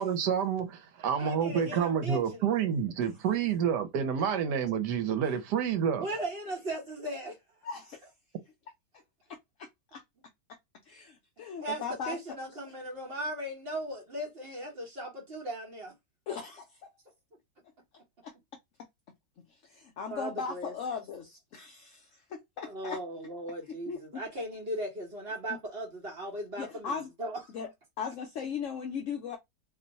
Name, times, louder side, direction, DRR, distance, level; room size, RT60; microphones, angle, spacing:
voice 1, 0.0-6.1, right 7 dB, 75° right, 1.3 m, -29 dB
voice 2, 1.2-2.5 3.3-3.5 5.6-5.7 6.0-7.4 11.6-15.9 16.3-16.4 20.1-20.7 22.7-27.4, right 1 dB, 40° right, 1.0 m, -38 dB
voice 3, 7.6-8.0 9.6-10.0 10.9-12.2 16.3-16.9 18.2-18.3 19.4-23.0 23.9-24.2 25.5-25.6 26.6-27.1 27.5-27.7 28.0-29.4, left 6 dB, 65° left, 0.7 m, -38 dB
3.0 x 2.2 x 3.9 m
omnidirectional pair, 1.9 m